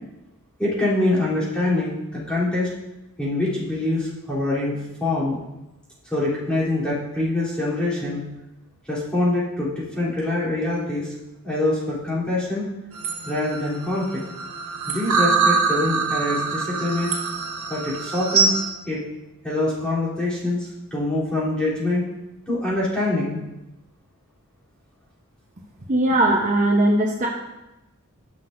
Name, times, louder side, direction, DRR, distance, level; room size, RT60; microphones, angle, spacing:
voice 1, 0.6-2.7 3.2-5.4 6.1-8.2 8.9-11.1 11.4-12.7 13.2-14.2 14.9-17.1 17.7-18.5 18.9-19.0 19.4-22.0 22.5-23.4, left 2 dB, 5° left, -10 dB, 3.3 m, -24 dB
sound 1, 12.9-18.7, right 4 dB, 85° right, 1.1 m, -24 dB
voice 2, 25.9-27.3, right 1 dB, 35° right, -2 dB, 0.8 m, -19 dB
13.5 x 6.0 x 2.6 m, 0.96 s
head